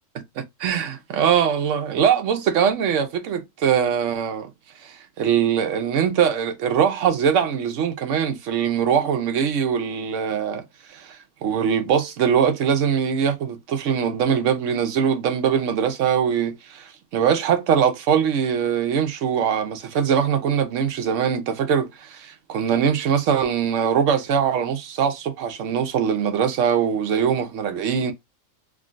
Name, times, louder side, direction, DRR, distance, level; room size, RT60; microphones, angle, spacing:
voice 1, 0.1-4.5 4.8-10.6 10.9-28.1, right 7 dB, 70° right, 1.0 m, -22 dB
3.6 x 2.2 x 2.5 m
omnidirectional pair, 1.3 m